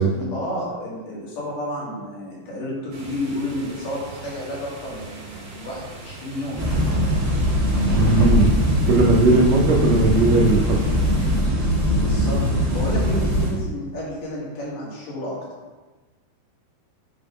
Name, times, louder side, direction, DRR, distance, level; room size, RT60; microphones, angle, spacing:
voice 1, 0.1-6.6 11.9-12.4 12.7-15.4, equal, 70° left, -6 dB, 3.4 m, -31 dB
sound 1, 2.9-11.4, right 2 dB, 40° right, 2.2 m, -40 dB
sound 2, 6.6-13.6, equal, 10° right, 1.1 m, -21 dB
voice 2, 7.9-8.5 8.9-10.8, right 3 dB, 80° right, -2 dB, 1.5 m, -18 dB
7.5 x 3.6 x 5.0 m, 1.3 s
omnidirectional pair, 4.0 m